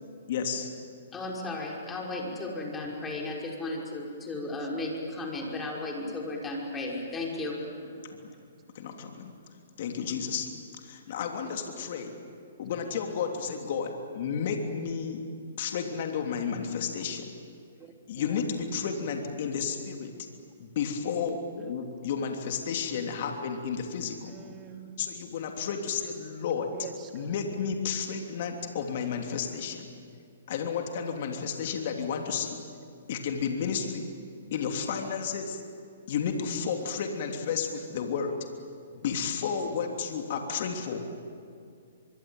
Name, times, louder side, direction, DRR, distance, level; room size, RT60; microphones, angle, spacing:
voice 1, 0.3-0.7 8.7-9.3 9.8-10.5 10.8-12.2 12.6-15.2 15.6-17.3 18.1-20.1 20.6-24.3 25.0-26.7 27.1-29.9 30.5-32.6 33.1-34.1 34.5-35.6 36.1-38.5 38.9-41.0, left 6 dB, 55° left, 4 dB, 3.2 m, -32 dB
voice 2, 1.1-7.6, left 2 dB, 15° left, -1 dB, 5.5 m, -34 dB
voice 3, 7.6-8.4 11.4-12.0 16.9-17.0 17.8-18.6 24.2-24.9 26.7-27.3 29.4-29.7, right 6 dB, 25° right, 4 dB, 2.9 m, -49 dB
24.0 x 24.0 x 9.2 m, 2.4 s
hypercardioid pair, 135°, 0 cm